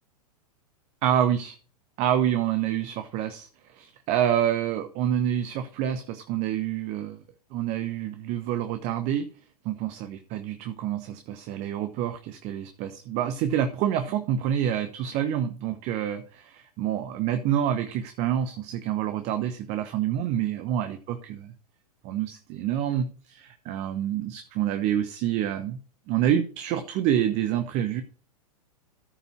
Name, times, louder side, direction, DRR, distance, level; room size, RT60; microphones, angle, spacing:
voice 1, 1.0-1.6 2.0-7.2 7.5-9.2 9.6-21.5 22.0-25.8 26.1-28.0, right 10 dB, 35° right, 9 dB, 1.0 m, -27 dB
14.0 x 5.4 x 4.5 m, 0.40 s
figure-of-eight pair, 100°, 20 cm